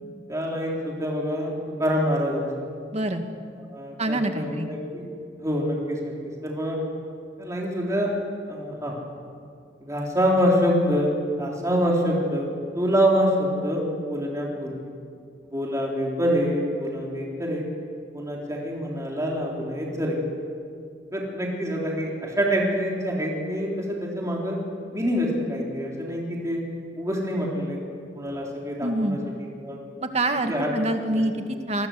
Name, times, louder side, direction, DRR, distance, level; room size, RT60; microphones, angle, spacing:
voice 1, 0.3-1.5 1.8-2.5 3.7-5.0 5.4-6.1 6.4-6.8 7.4-8.1 8.5-8.9 9.8-11.1 11.4-12.5 12.7-14.8 15.5-17.6 18.1-20.2 21.1-24.6 24.9-26.6 27.0-27.8 28.1-29.2 29.6-29.8 30.5-30.7 31.1-31.2, equal, 15° right, -2 dB, 3.7 m, -26 dB
voice 2, 2.9-3.2 4.0-4.7 28.8-29.2 30.0-31.9, right 1 dB, 35° right, 6 dB, 2.0 m, -26 dB
26.5 x 21.0 x 7.8 m, 2.2 s
head